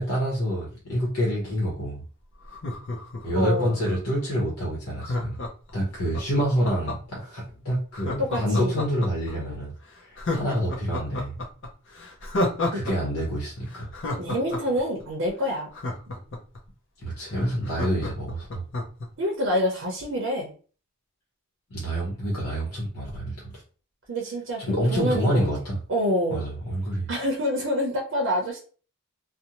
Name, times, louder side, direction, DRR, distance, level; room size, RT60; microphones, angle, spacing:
voice 1, 0.0-2.0 3.2-5.4 5.7-9.7 10.0-11.4 12.7-13.9 17.0-18.7 21.7-23.6 24.6-25.8 26.3-27.1, equal, 80° left, -4 dB, 0.9 m, -27 dB
Laughter, 2.4-4.1 5.0-7.2 7.9-9.3 9.7-9.8 10.2-12.9 13.2-13.3 13.7-16.6 17.0-17.1 17.3-19.1 19.4-19.5, left 2 dB, 55° left, 0.6 m, -31 dB
voice 2, 3.3-3.8 6.6-6.7 8.2-8.8 12.7-13.0 14.2-15.7 19.2-20.5 24.1-24.6 24.9-25.5 25.9-26.5 27.1-28.6, equal, 55° right, 0 dB, 0.6 m, -27 dB
2.6 x 2.1 x 2.8 m, 0.39 s
head